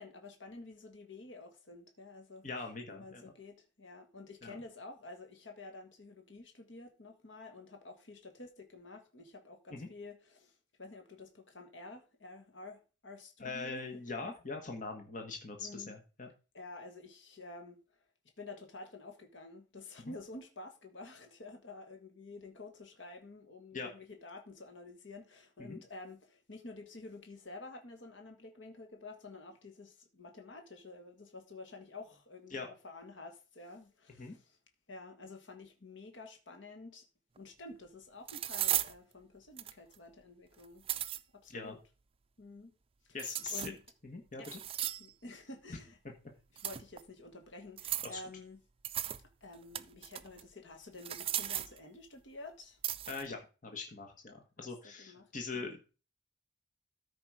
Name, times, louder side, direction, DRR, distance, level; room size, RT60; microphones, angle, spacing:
voice 1, 0.0-14.3 15.6-15.9 16.5-18.0 18.4-34.6 34.9-37.0 37.4-40.9 41.3-41.8 42.4-42.7 43.5-43.8 44.4-44.5 45.0-46.0 46.5-48.6 49.4-52.8 54.6-55.7, left 2 dB, 80° left, 1.6 m, -50 dB
voice 2, 2.4-3.2 4.4-4.6 9.7-9.9 13.4-16.3 20.1-20.2 23.7-23.9 25.6-25.8 32.5-32.7 34.2-34.3 41.5-41.8 43.1-43.6 44.0-44.6 48.0-48.2 53.1-55.9, left 4 dB, 40° left, 1.4 m, -42 dB
sound 1, 37.4-37.5 38.3-38.9 39.6-39.9 40.6-41.2 43.2-43.9 44.4-45.1 46.6-47.0 47.8-48.2 48.8-49.2 49.5-50.4 51.0-51.8 52.8-53.3, right 12 dB, 30° right, 0.4 m, -36 dB
13.5 x 5.1 x 4.8 m
head